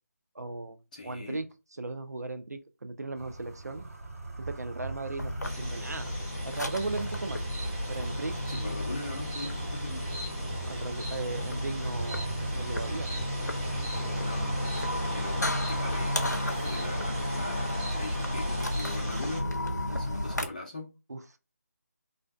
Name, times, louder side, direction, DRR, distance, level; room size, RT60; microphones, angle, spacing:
voice 1, 0.4-0.8 1.0-1.5 1.8-3.8 4.4-6.1 6.4-7.5 7.9-8.4 8.6-8.7 10.6-13.1 21.1-21.2, right 3 dB, 75° right, 0.4 m, -37 dB
voice 2, 0.9-1.4 8.5-10.2 14.2-14.6 15.1-19.4 19.9-20.9, left 3 dB, 25° left, 0.5 m, -41 dB
sound 1, 3.2-16.3, right 3 dB, 55° right, 0.8 m, -42 dB
sound 2, 5.2-20.5, left 1 dB, 85° left, 0.5 m, -33 dB
sound 3, 5.4-19.4, equal, 15° right, 0.6 m, -38 dB
2.5 x 2.1 x 2.3 m
figure-of-eight pair, 155°, 9 cm